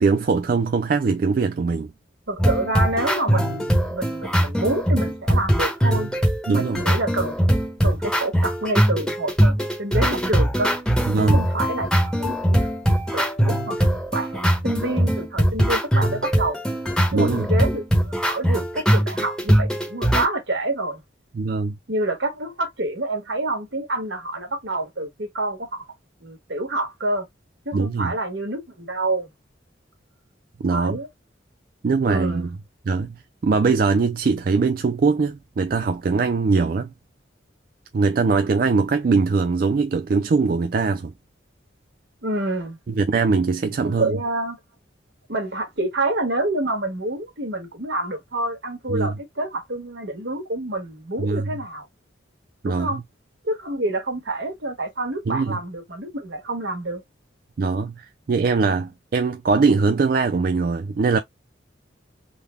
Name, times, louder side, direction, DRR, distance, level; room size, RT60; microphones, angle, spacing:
voice 1, 0.0-1.9 6.5-6.8 11.1-11.4 17.1-17.5 21.3-21.7 27.7-28.1 30.6-31.0 31.8-32.5 32.9-36.9 37.9-41.1 42.9-44.2 48.9-49.1 51.2-51.5 52.6-52.9 55.3-55.6 57.6-61.2, right 4 dB, 50° right, 0.3 m, -21 dB
voice 2, 2.3-6.1 6.5-10.7 11.2-12.7 13.1-16.6 17.1-21.0 21.9-25.8 26.2-27.2 27.6-29.3 30.7-31.1 32.0-32.5 42.2-42.8 43.8-44.6 45.3-51.9 52.6-53.0 53.4-57.0, right 2 dB, 70° right, 1.4 m, -27 dB
sound 1, 2.4-20.2, equal, 5° left, 1.1 m, -21 dB
3.8 x 2.1 x 3.4 m
head